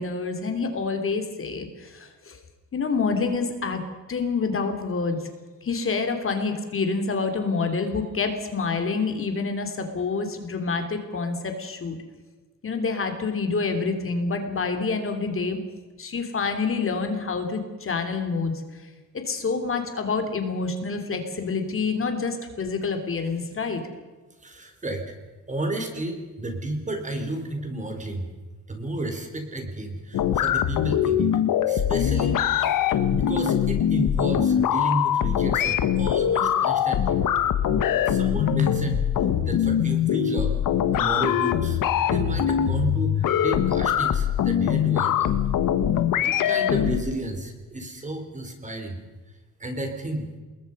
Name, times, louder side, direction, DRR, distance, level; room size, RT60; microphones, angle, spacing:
voice 1, 0.0-2.4 2.7-3.8 4.1-5.3 5.6-12.0 12.6-15.6 16.0-18.6 19.2-23.8, left 4 dB, 40° left, 6 dB, 3.1 m, -27 dB
voice 2, 24.4-25.1 25.5-28.3 28.7-31.3 31.7-37.2 38.0-39.0 39.4-40.5 40.9-45.4 46.1-49.0 49.6-50.3, right 1 dB, 25° right, 5 dB, 4.2 m, -32 dB
sound 1, 30.1-47.0, left 9 dB, 90° left, 1.6 m, -22 dB
27.5 x 21.5 x 5.5 m, 1.3 s
cardioid pair, 130°, 32 cm